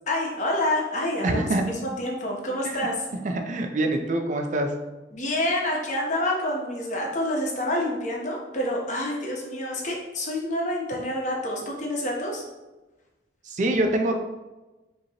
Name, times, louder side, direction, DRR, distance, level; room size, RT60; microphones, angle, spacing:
voice 1, 0.1-3.0 5.1-12.4, left 1 dB, 45° left, -1 dB, 0.9 m, -28 dB
voice 2, 1.2-1.6 2.6-2.8 3.2-4.7 13.5-14.1, right 1 dB, 45° right, 4 dB, 0.4 m, -25 dB
5.1 x 2.9 x 2.9 m, 1.1 s
head